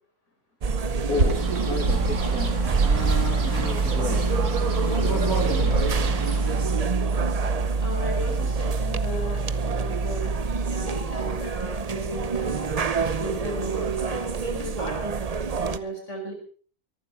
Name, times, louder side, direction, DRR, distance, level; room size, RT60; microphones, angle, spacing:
sound 1, 0.6-15.8, right 4 dB, 40° right, 0.6 m, -26 dB
Bird, 1.0-6.9, right 3 dB, 90° right, 2.5 m, -29 dB
voice 1, 1.1-4.3 4.7-5.9, left 3 dB, 75° left, 3.0 m, -32 dB
voice 2, 7.8-10.3 10.7-12.7 13.2-15.2 15.6-16.3, right 1 dB, 50° left, 5.3 m, -35 dB
23.5 x 12.0 x 4.4 m
omnidirectional pair, 1.6 m